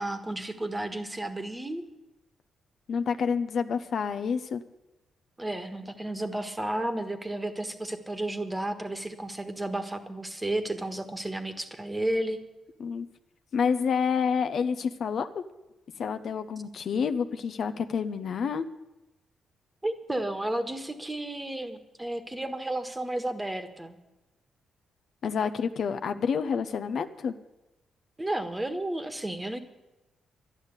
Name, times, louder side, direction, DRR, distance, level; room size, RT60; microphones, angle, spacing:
voice 1, 0.0-1.9 5.4-12.4 19.8-24.0 28.2-29.6, right 1 dB, 15° right, 8 dB, 1.4 m, -32 dB
voice 2, 2.9-4.6 12.8-13.1 13.5-15.4 16.0-18.7 25.2-27.3, left 6 dB, 60° left, 10 dB, 0.7 m, -28 dB
11.5 x 11.0 x 8.2 m, 1.0 s
cardioid pair, 90°, 0 cm